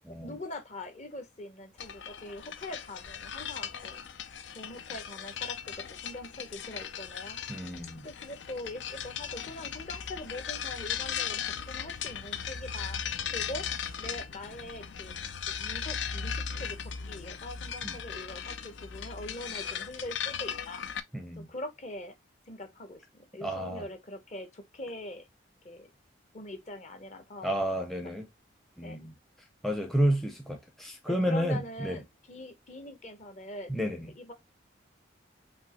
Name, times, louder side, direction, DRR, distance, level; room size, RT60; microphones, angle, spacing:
voice 1, 0.2-4.0 4.5-7.4 8.0-13.0 13.3-13.7 14.0-15.1 15.5-16.8 17.0-20.8 21.4-22.1 22.5-25.3 25.6-25.9 26.3-27.5 27.9-28.1 28.8-29.0 31.1-33.7 34.2-34.3, left 1 dB, 35° left, 0.9 m, -42 dB
sound 1, 1.8-21.0, left 7 dB, 65° left, 0.5 m, -38 dB
voice 2, 7.5-8.1 17.8-18.0 21.1-21.5 23.4-23.8 27.4-28.3 28.8-29.1 29.6-32.0 33.7-34.1, equal, ahead, 0.6 m, -31 dB
5.2 x 2.9 x 2.9 m
head